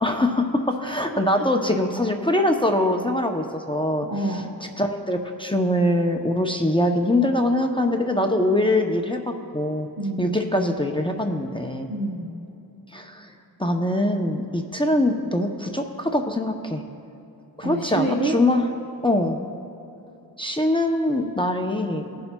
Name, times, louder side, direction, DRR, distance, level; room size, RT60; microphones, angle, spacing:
voice 1, 0.0-4.1 4.8-9.9 10.2-11.9 12.9-13.3 13.6-16.8 17.6-18.6 19.0-19.4 20.4-22.0, left 1 dB, 10° left, 3 dB, 0.6 m, -23 dB
voice 2, 4.0-4.5 10.0-10.3 11.9-12.3 17.6-18.4 22.2-22.3, right 2 dB, 50° right, -2 dB, 1.0 m, -27 dB
19.0 x 6.9 x 2.3 m, 2.8 s
cardioid pair, 55°, 43 cm